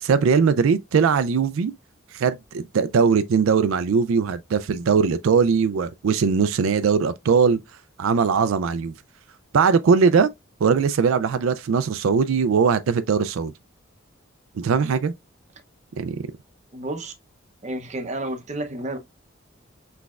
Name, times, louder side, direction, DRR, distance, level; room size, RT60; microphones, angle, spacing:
voice 1, 0.0-1.7 2.1-7.6 8.0-8.9 9.5-10.3 10.6-13.5 14.6-15.1 16.0-16.2, right 5 dB, 85° right, 0.4 m, -20 dB
voice 2, 16.7-17.1 17.6-19.0, right 1 dB, 35° right, 0.7 m, -30 dB
6.1 x 3.3 x 2.3 m
head